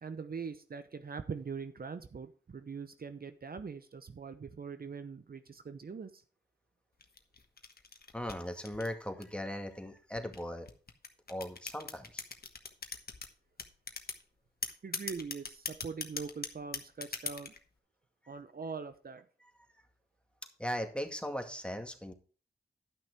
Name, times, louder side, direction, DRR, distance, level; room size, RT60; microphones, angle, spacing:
voice 1, 0.0-6.2 14.8-17.5 18.3-19.3, right 5 dB, 55° right, 0.8 m, -42 dB
sound 1, 7.0-9.5 10.2-13.3 13.6-14.2 14.6-17.6, left 4 dB, 55° left, 1.4 m, -40 dB
voice 2, 8.1-10.7 11.3-12.2 20.6-22.1, equal, 5° left, 2.1 m, -38 dB
11.5 x 6.0 x 4.7 m
cardioid pair, 45°, 18 cm